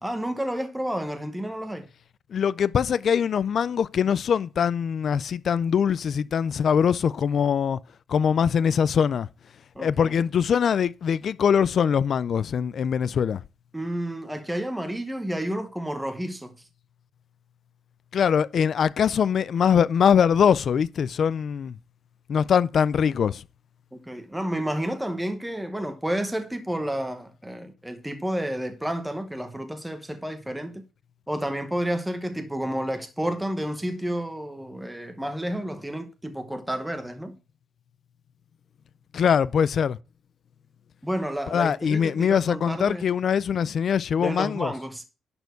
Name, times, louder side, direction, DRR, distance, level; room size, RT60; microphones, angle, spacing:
voice 1, 0.0-1.8 9.7-10.2 13.7-16.5 24.1-30.8 31.3-37.4 41.0-43.0 44.2-45.0, right 1 dB, 5° right, 1.0 m, -30 dB
voice 2, 2.3-7.8 8.1-9.3 9.8-13.4 18.1-21.8 22.3-23.4 39.1-40.0 41.5-44.7, left 7 dB, 45° left, 0.4 m, -22 dB
11.0 x 4.4 x 6.8 m
cardioid pair, 155°, 0 cm